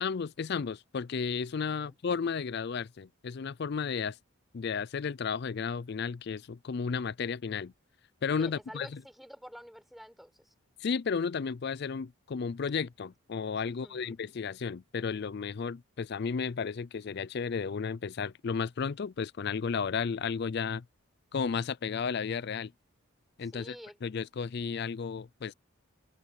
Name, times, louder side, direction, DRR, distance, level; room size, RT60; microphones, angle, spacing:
voice 1, 0.0-4.2 4.5-7.7 8.2-9.0 10.8-20.8 21.3-22.7 23.4-23.8 24.0-25.5, left 6 dB, 50° left, 0.4 m, -33 dB
voice 2, 1.6-1.9 8.4-10.5 13.6-14.1 23.4-24.0, equal, ahead, 5.5 m, -49 dB
head